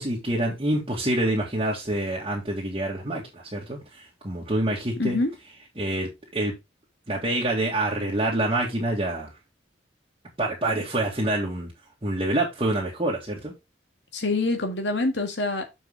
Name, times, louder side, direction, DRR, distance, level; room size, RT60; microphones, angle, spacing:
voice 1, 0.0-5.2 5.8-6.5 7.1-9.3 10.4-11.7 12.0-13.5, right 1 dB, 30° right, 2.0 m, -26 dB
voice 2, 5.0-5.3 14.1-15.7, left 2 dB, 75° left, 1.9 m, -26 dB
6.9 x 6.4 x 3.7 m
head